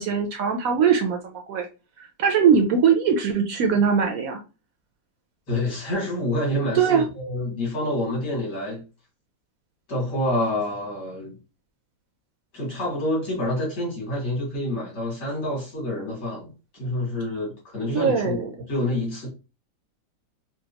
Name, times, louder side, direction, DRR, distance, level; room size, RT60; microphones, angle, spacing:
voice 1, 0.0-1.7 2.0-4.4 6.7-7.1 17.9-18.5, right 6 dB, 70° right, 0.9 m, -21 dB
voice 2, 5.5-8.8 9.9-11.4 12.5-16.5 16.8-18.4 18.7-19.3, left 1 dB, 80° left, 2.8 m, -27 dB
4.9 x 2.3 x 2.8 m
omnidirectional pair, 1.8 m